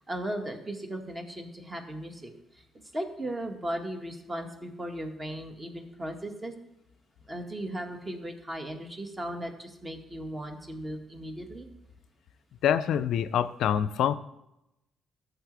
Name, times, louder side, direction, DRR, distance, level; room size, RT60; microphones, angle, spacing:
voice 1, 0.1-2.6 2.9-6.5 7.3-11.7, right 1 dB, 30° right, 4 dB, 1.8 m, -37 dB
voice 2, 12.6-14.1, left 9 dB, 70° left, 14 dB, 0.4 m, -25 dB
14.5 x 6.5 x 3.4 m, 0.88 s
hypercardioid pair, 45°, 0 cm